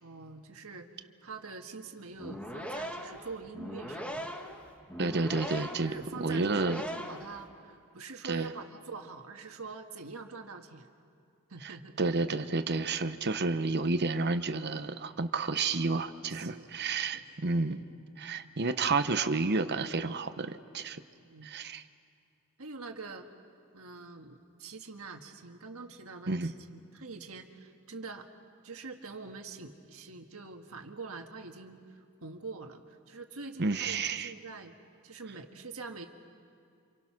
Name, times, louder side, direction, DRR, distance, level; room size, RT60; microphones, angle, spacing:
voice 1, 0.0-4.3 5.9-10.9 11.5-12.0 16.3-16.7 17.1-17.2 21.1-21.5 22.6-23.3 23.7-28.3 28.6-34.7 35.0-36.1, right 4 dB, 70° right, 4 dB, 1.7 m, -45 dB
sound 1, 2.1-7.4, equal, 5° left, 1.4 m, -40 dB
voice 2, 5.0-5.9 6.2-6.8 8.2-8.5 11.6-17.8 18.2-21.0 21.4-21.8 26.3-26.5 33.6-34.3, right 3 dB, 50° right, 10 dB, 0.9 m, -30 dB
28.0 x 26.5 x 6.0 m, 2.3 s
head